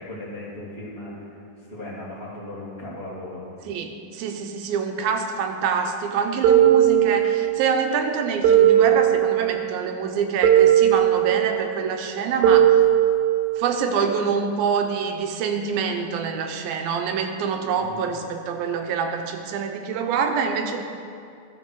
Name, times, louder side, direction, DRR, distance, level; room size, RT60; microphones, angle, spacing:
voice 1, 0.0-1.4 1.7-3.4 17.7-18.1, left 1 dB, 30° right, -9 dB, 1.2 m, -37 dB
voice 2, 3.7-12.7 13.6-20.8, right 6 dB, 90° right, 5 dB, 2.6 m, -26 dB
sound 1, 6.4-7.6 8.4-9.6 10.4-11.6 12.4-13.6, right 11 dB, 75° right, 1.9 m, -17 dB
13.5 x 6.3 x 4.6 m, 2.4 s
omnidirectional pair, 4.1 m